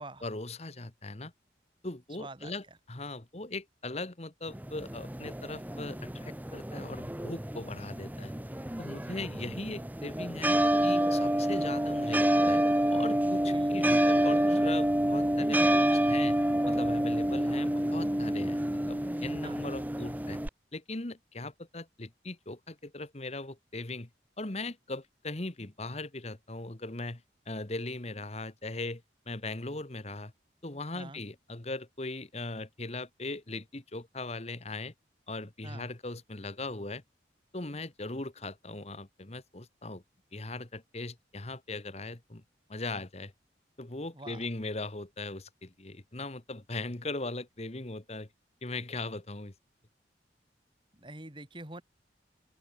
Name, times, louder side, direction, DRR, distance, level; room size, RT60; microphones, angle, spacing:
voice 1, 0.0-1.3 1.8-8.3 8.8-12.6 12.9-16.4 16.7-20.4 20.7-24.1 24.4-30.3 30.6-34.9 35.3-37.0 37.5-40.0 40.3-42.4 42.7-43.3 43.8-48.3 48.6-49.5, left 2 dB, 35° left, 1.4 m, -39 dB
voice 2, 2.2-2.5 13.5-13.8 19.4-19.6 30.9-31.2 35.6-35.9 44.1-44.5 50.9-51.8, right 2 dB, 25° right, 2.6 m, -45 dB
sound 1, 4.5-20.5, right 1 dB, 10° right, 1.0 m, -28 dB
open air
head